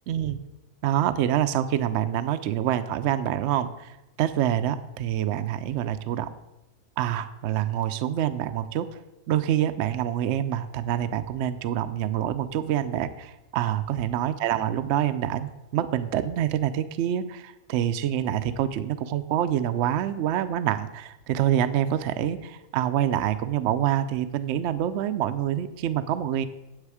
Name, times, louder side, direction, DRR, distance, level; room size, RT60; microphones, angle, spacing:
voice 1, 0.1-0.4 0.8-3.9 4.2-6.3 7.0-9.0 9.3-26.5, right 11 dB, 65° right, 11 dB, 0.7 m, -26 dB
9.8 x 7.5 x 4.8 m, 0.97 s
omnidirectional pair, 1.5 m